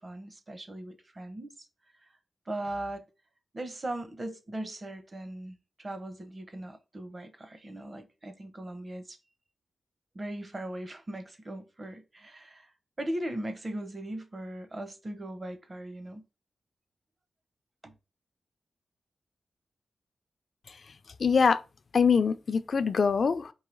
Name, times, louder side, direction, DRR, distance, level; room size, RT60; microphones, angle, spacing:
voice 1, 0.0-1.6 2.0-2.1 2.5-3.0 3.5-9.2 10.1-16.2 17.8-17.9, right 1 dB, 35° right, 0.8 m, -39 dB
voice 2, 21.2-21.6 21.9-23.5, left 5 dB, 60° left, 0.4 m, -24 dB
4.8 x 2.7 x 3.9 m
cardioid pair, 65°, 0 cm